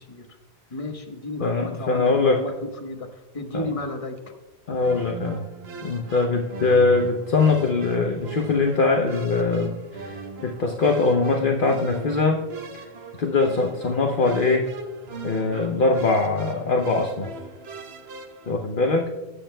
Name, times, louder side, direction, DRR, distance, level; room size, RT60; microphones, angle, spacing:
voice 1, 0.7-4.2, left 2 dB, 30° left, 3 dB, 1.1 m, -33 dB
voice 2, 1.4-2.4 3.5-3.7 4.7-5.5 5.8-12.4 13.2-14.7 15.2-17.3 18.5-19.1, left 3 dB, 55° left, 2 dB, 0.9 m, -22 dB
sound 1, 4.8-18.5, right 4 dB, 70° right, 1.2 m, -39 dB
19.0 x 7.6 x 2.2 m, 1.2 s
omnidirectional pair, 1.1 m